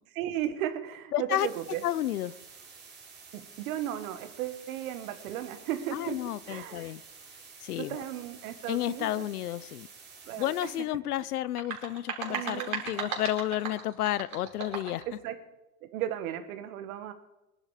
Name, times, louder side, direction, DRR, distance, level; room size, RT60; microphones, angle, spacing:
voice 1, 0.2-1.8 3.3-6.2 6.5-6.9 7.8-9.3 10.3-10.7 12.3-13.1 15.1-15.4 15.9-17.1, right 12 dB, 70° right, 9 dB, 1.9 m, -35 dB
voice 2, 1.1-1.5 1.8-2.3 5.9-7.0 7.6-8.0 8.7-9.9 10.4-15.0, left 13 dB, 90° left, 20 dB, 0.7 m, -31 dB
sound 1, 1.4-10.8, right 5 dB, 25° right, 3.2 m, -51 dB
sound 2, 11.4-15.1, right 6 dB, 45° right, 4.8 m, -36 dB
20.5 x 11.5 x 5.1 m, 0.97 s
hypercardioid pair, 100°, 44 cm